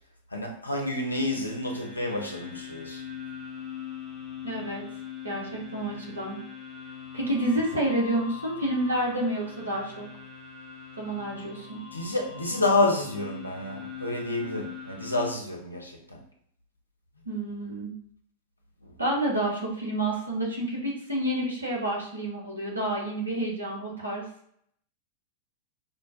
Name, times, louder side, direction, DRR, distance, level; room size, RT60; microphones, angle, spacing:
voice 1, 0.3-3.0 11.9-16.2 18.8-18.9, left 2 dB, 85° left, 1 dB, 0.6 m, -29 dB
sound 1, 1.0-15.3, left 7 dB, 30° right, 1.3 m, -42 dB
voice 2, 4.4-4.8 5.2-6.4 7.1-10.1 11.0-11.8 17.3-17.9 19.0-24.3, right 1 dB, 80° right, -2 dB, 1.0 m, -29 dB
5.0 x 2.2 x 2.5 m, 0.66 s
figure-of-eight pair, 90°, 0 cm